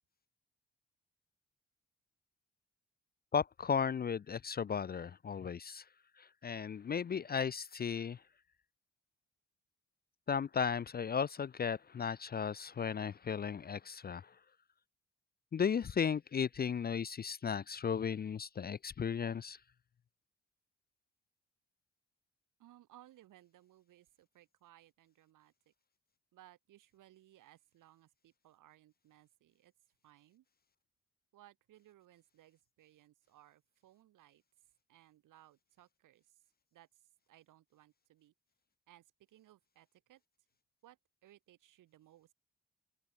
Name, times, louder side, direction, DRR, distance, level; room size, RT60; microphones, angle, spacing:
voice 1, 3.3-5.8 6.2-8.2 10.3-14.2 15.5-19.6, left 6 dB, 30° left, 0.5 m, -35 dB
voice 2, 22.6-25.7 26.3-29.7 30.0-30.4 31.3-34.4 34.9-36.4 36.7-38.3 38.9-40.2 40.8-42.3, right 14 dB, 80° right, 7.2 m, -63 dB
open air
supercardioid pair, 50°, 31 cm